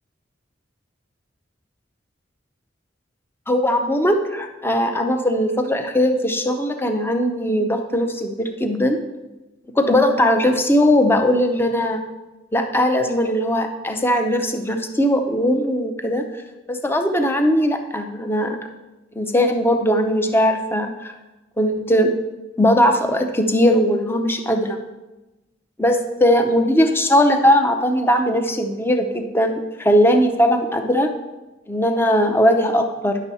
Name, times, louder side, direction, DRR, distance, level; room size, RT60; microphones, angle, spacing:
voice 1, 3.5-9.0 9.8-12.0 12.5-16.2 16.7-18.6 19.2-21.1 21.6-22.1 22.6-24.8 25.8-31.1 31.7-33.2, equal, 10° left, 5 dB, 0.7 m, -19 dB
10.5 x 6.2 x 4.2 m, 1.1 s
head